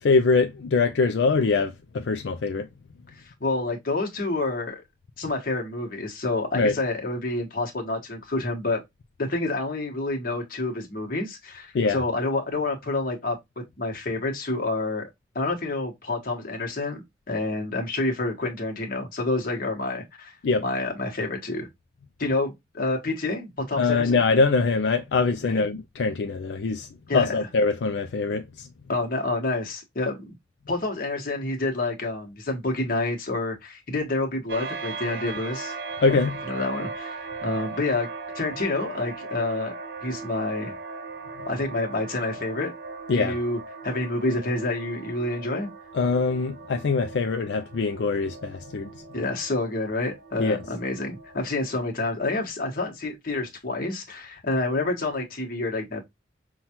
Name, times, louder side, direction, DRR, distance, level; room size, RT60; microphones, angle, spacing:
voice 1, 0.0-2.7 6.5-6.8 11.7-12.0 20.4-20.6 23.8-26.9 27.1-28.7 36.0-36.3 43.1-43.4 45.9-48.9 50.4-50.6, left 4 dB, 80° left, 0.4 m, -23 dB
voice 2, 3.2-4.8 5.2-8.8 9.2-13.4 13.8-15.1 15.3-21.7 22.2-24.2 25.4-25.6 27.1-27.5 28.9-30.3 30.7-35.7 36.5-38.1 38.3-39.7 40.0-40.7 41.5-42.7 43.1-45.7 49.1-56.0, left 2 dB, 50° left, 1.2 m, -28 dB
sound 1, 34.5-51.7, right 4 dB, 65° right, 0.8 m, -38 dB
5.7 x 2.3 x 2.8 m
head